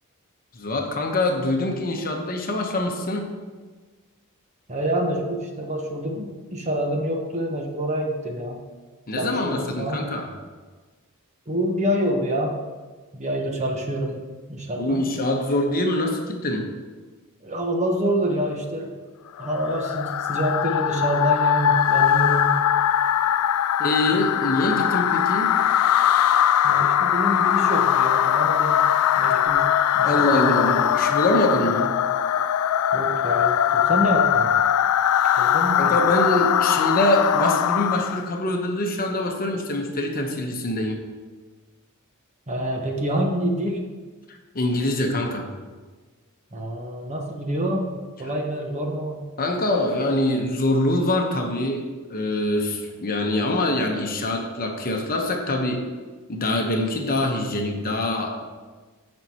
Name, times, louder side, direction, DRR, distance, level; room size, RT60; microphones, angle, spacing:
voice 1, 0.5-3.3 9.1-10.3 14.8-16.7 23.8-25.5 30.0-31.9 35.8-41.0 44.3-45.5 49.4-51.8 52.1-55.8 56.3-58.4, left 1 dB, 40° left, 3 dB, 1.0 m, -24 dB
voice 2, 4.7-8.6 9.2-10.1 11.5-12.6 13.1-14.2 14.5-15.0 17.4-19.0 19.4-22.6 24.1-24.2 26.6-28.9 29.2-30.8 32.9-34.5 35.4-36.0 42.5-43.8 46.5-47.9 48.2-49.2, equal, 30° right, 1 dB, 1.1 m, -27 dB
sound 1, 19.4-38.3, left 10 dB, 75° left, 0.3 m, -21 dB
15.0 x 5.4 x 2.9 m, 1.4 s
head